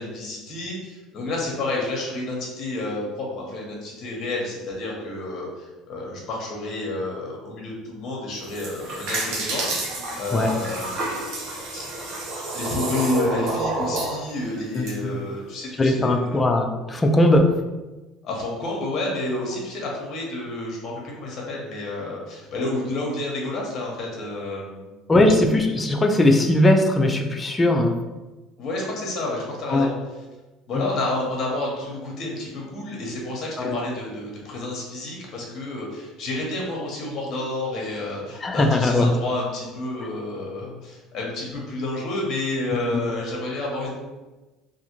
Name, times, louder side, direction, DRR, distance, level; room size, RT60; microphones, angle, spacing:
voice 1, 0.0-11.0 11.7-16.4 18.2-25.1 28.6-29.9 30.7-43.9, left 2 dB, 45° left, -2 dB, 0.8 m, -30 dB
sound 1, 8.3-14.9, right 2 dB, 65° right, 0.7 m, -29 dB
voice 2, 14.7-15.1 15.8-17.5 25.1-27.9 29.7-29.9 30.7-30.9 33.6-33.8 38.4-39.1, left 1 dB, 20° left, 4 dB, 0.4 m, -19 dB
2.5 x 2.4 x 2.9 m, 1.2 s
supercardioid pair, 105°, 0 cm